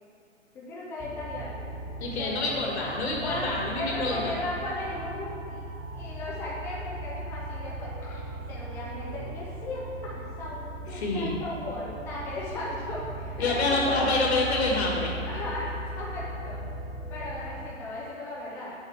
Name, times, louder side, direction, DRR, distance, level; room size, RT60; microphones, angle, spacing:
voice 1, 0.5-1.5 2.2-2.4 3.2-3.5 3.7-5.6 5.9-8.2 8.5-10.6 10.8-14.2 15.2-16.6 17.1-18.7, left 2 dB, 5° left, -6 dB, 0.5 m, -36 dB
sound 1, 1.0-17.6, right 1 dB, 25° right, 1.6 m, -38 dB
voice 2, 2.0-4.4 10.9-11.4 13.4-15.1, left 2 dB, 55° left, -2 dB, 2.1 m, -27 dB
8.7 x 7.3 x 3.6 m, 2.6 s
figure-of-eight pair, 125°, 39 cm